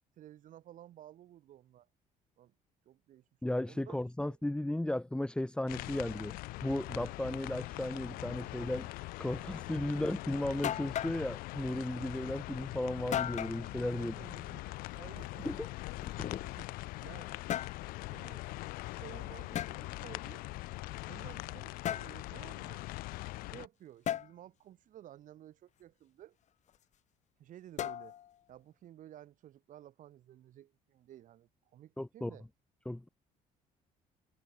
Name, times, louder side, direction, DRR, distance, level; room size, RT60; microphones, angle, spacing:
voice 1, 0.2-1.9 2.4-2.5 2.8-3.2 3.7-4.0 9.4-9.6 9.9-10.0 13.8-15.6 16.4-16.7 17.0-17.3 18.1-18.4 18.9-20.4 21.1-22.8 23.5-26.4 27.4-28.1 28.5-32.5, right 12 dB, 60° right, 6.6 m, -54 dB
voice 2, 3.4-8.9 9.2-14.1 15.4-15.7 16.2-16.4 32.0-32.3 32.8-33.1, left 1 dB, 5° left, 1.3 m, -35 dB
sound 1, 5.7-23.7, left 20 dB, 80° left, 0.6 m, -42 dB
sound 2, 10.1-10.2 10.6-11.2 13.1-13.6 15.3-16.7 17.3-17.8 19.5-19.8 21.8-22.2 24.1-24.3 27.8-28.3, left 11 dB, 55° left, 1.9 m, -36 dB
cardioid pair, 115°, 15 cm